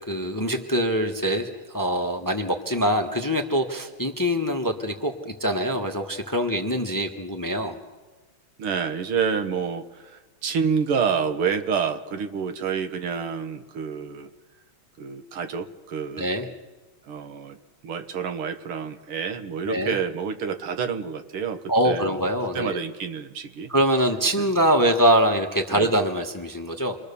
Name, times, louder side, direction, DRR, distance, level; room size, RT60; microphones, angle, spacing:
voice 1, 0.1-7.8 16.2-16.5 19.6-19.9 21.7-22.8 23.7-27.0, right 1 dB, 10° left, 4 dB, 1.1 m, -24 dB
voice 2, 8.6-14.3 15.0-16.3 17.0-17.6 17.8-22.2 22.5-23.7 24.4-24.5 25.7-25.9, right 6 dB, 80° right, 8 dB, 2.2 m, -28 dB
28.0 x 22.5 x 7.0 m, 1.3 s
omnidirectional pair, 2.4 m